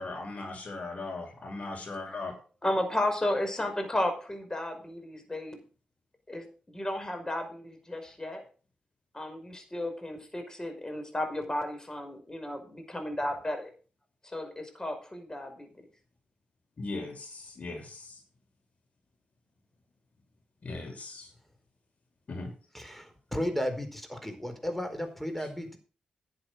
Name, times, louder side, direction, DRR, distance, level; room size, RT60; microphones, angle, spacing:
voice 1, 0.0-2.3 16.8-18.1 20.6-21.3 22.3-22.5, left 3 dB, 55° left, 3 dB, 6.4 m, -38 dB
voice 2, 2.6-5.6 6.3-8.4 9.1-13.7 14.2-15.9, left 1 dB, 20° left, 5 dB, 5.5 m, -33 dB
voice 3, 22.7-25.8, equal, 5° left, 7 dB, 4.6 m, -34 dB
11.5 x 7.9 x 6.5 m, 0.37 s
supercardioid pair, 45°, 3 cm